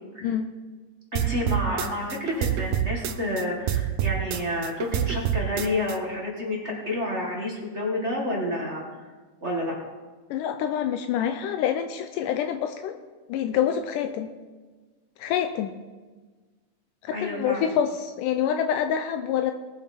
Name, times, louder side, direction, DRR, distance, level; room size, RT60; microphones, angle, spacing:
voice 1, 1.1-9.1 9.4-9.7 17.1-17.7, left 1 dB, 30° right, -2 dB, 1.5 m, -29 dB
sound 1, 1.2-3.4 3.7-6.0, right 11 dB, 75° right, 2.0 m, -27 dB
voice 2, 10.3-13.0 13.3-14.3 15.2-15.7 17.0-19.5, left 9 dB, 80° left, 7 dB, 2.1 m, -26 dB
19.5 x 7.6 x 4.3 m, 1.3 s
omnidirectional pair, 3.8 m